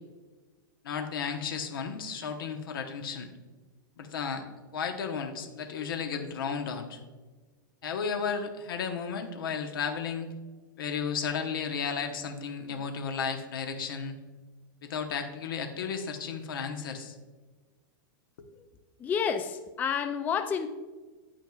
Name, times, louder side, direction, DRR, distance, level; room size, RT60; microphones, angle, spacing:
voice 1, 0.8-3.3 4.0-4.4 4.7-7.0 7.8-10.3 10.8-14.2 14.8-17.1 18.4-18.5, left 6 dB, 85° left, 5 dB, 1.0 m, -33 dB
voice 2, 19.0-20.7, left 7 dB, 15° left, 9 dB, 0.3 m, -29 dB
8.9 x 8.9 x 2.3 m, 1.3 s
supercardioid pair, 140°, 11 cm